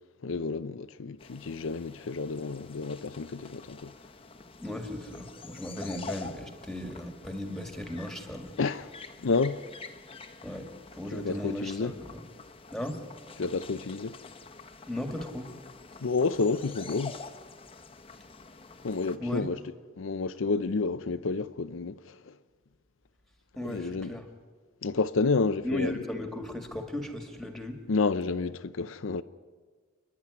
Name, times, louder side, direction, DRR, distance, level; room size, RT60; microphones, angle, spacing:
voice 1, 0.2-3.9 8.6-8.9 9.2-9.6 11.1-11.9 13.4-14.2 16.0-17.2 18.8-19.6 20.0-22.3 23.6-24.2 24.8-26.0 27.9-29.2, left 4 dB, 75° left, 0.6 m, -30 dB
sound 1, 1.2-19.2, left 4 dB, 25° left, 1.0 m, -47 dB
voice 2, 4.6-8.5 10.4-10.7 10.9-12.2 12.7-13.0 14.9-15.5 19.2-19.5 23.6-24.2 25.6-27.8, left 1 dB, ahead, 2.0 m, -36 dB
29.0 x 10.5 x 9.7 m
head